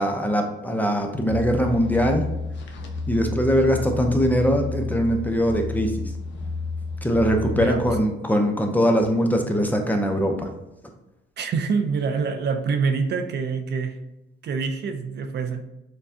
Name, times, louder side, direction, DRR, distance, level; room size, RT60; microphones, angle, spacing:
voice 1, 0.0-2.3 3.1-6.1 7.0-10.5, equal, 10° left, 3 dB, 0.6 m, -22 dB
sound 1, 1.3-8.0, left 4 dB, 65° left, 0.7 m, -31 dB
voice 2, 7.5-7.9 11.4-14.0 14.4-15.6, right 5 dB, 60° right, 6 dB, 0.5 m, -26 dB
6.4 x 2.3 x 2.7 m, 0.93 s
cardioid pair, 90°, 20 cm